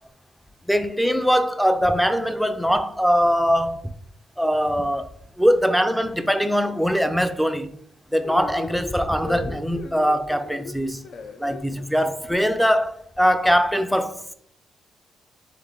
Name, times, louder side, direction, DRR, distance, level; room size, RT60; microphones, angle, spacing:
voice 1, 0.7-3.8 4.4-5.1 5.4-7.7 8.1-11.0 11.4-14.3, equal, ahead, 0.4 m, -21 dB
sound 1, 8.2-12.4, left 4 dB, 55° left, 0.5 m, -37 dB
3.7 x 3.6 x 3.5 m
cardioid pair, 90°, 0 cm